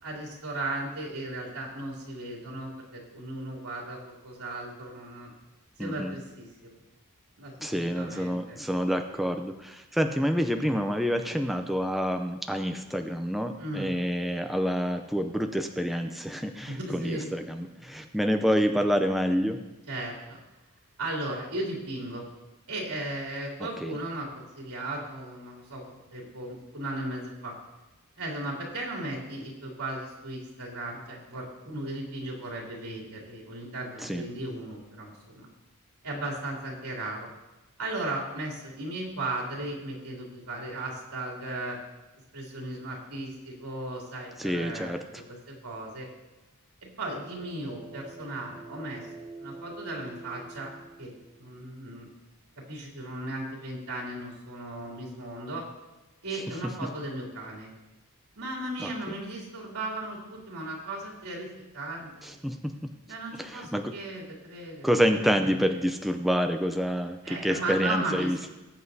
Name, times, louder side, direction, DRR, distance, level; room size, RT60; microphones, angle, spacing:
voice 1, 0.0-5.3 5.8-6.7 7.4-8.6 13.6-13.9 16.7-17.3 19.9-20.4 21.0-22.3 22.7-27.5 28.2-35.5 36.0-37.3 37.8-41.8 42.3-46.1 46.8-49.1 49.4-50.7 51.0-51.1 51.4-52.1 52.7-55.6 56.2-57.7 58.3-62.4 63.1-65.6 67.2-68.5, right 2 dB, 85° right, -3 dB, 3.0 m, -36 dB
voice 2, 5.8-6.2 7.6-19.6 23.6-23.9 34.0-34.2 44.4-45.0 58.8-58.9 62.2-62.7 63.4-63.9 64.8-68.5, equal, ahead, 5 dB, 0.5 m, -28 dB
sound 1, 47.2-51.6, right 3 dB, 35° right, 1.0 m, -46 dB
19.5 x 8.0 x 2.7 m, 1.1 s
head